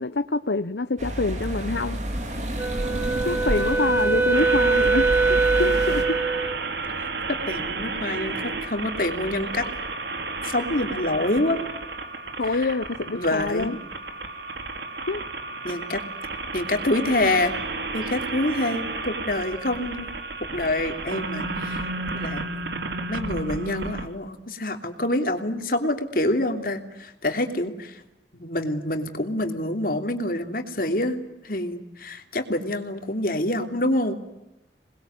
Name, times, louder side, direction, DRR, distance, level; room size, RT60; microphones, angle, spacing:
voice 1, 0.0-2.0 3.2-6.2 12.4-13.8 15.1-15.2, left 3 dB, 75° left, 11 dB, 0.9 m, -26 dB
sound 1, 1.0-6.0, right 1 dB, 40° right, 4.1 m, -30 dB
Wind instrument woodwind instrument, 2.6-6.6, right 4 dB, 15° right, 1.0 m, -22 dB
sound 2, 4.3-24.1, right 3 dB, 75° right, 3.0 m, -32 dB
voice 2, 7.3-9.7 10.4-11.6 12.4-12.8 13.1-13.8 15.6-16.0 16.5-17.5 17.9-20.1 20.5-21.9 22.1-22.5 23.1-28.0 28.3-34.1, left 1 dB, 55° left, 6 dB, 3.1 m, -26 dB
27.5 x 21.0 x 9.5 m, 0.94 s
head